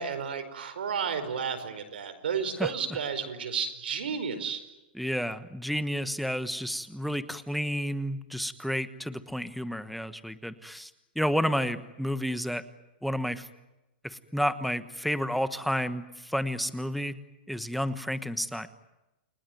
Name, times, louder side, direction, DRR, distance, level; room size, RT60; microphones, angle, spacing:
voice 1, 0.0-4.6, right 6 dB, 85° right, 8 dB, 4.9 m, -32 dB
voice 2, 2.6-3.0 4.9-10.9 11.1-12.6 13.0-13.5 14.0-17.2 17.5-18.7, equal, ahead, 12 dB, 1.2 m, -31 dB
29.5 x 20.5 x 9.3 m, 0.98 s
hypercardioid pair, 145°, 5 cm